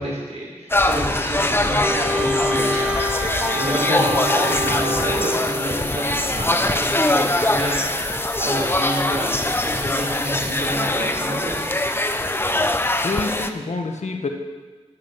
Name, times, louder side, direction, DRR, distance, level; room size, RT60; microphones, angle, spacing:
voice 1, 0.0-3.2 3.5-11.7, right 1 dB, 70° right, -4 dB, 4.6 m, -29 dB
sound 1, 0.7-13.5, left 1 dB, 20° left, 0.7 m, -22 dB
Wind instrument woodwind instrument, 1.8-5.8, left 1 dB, 5° right, 1.8 m, -26 dB
voice 2, 13.0-14.3, left 3 dB, 80° left, 3 dB, 1.4 m, -27 dB
10.0 x 9.5 x 6.4 m, 1.3 s
wide cardioid pair, 85°, 12 cm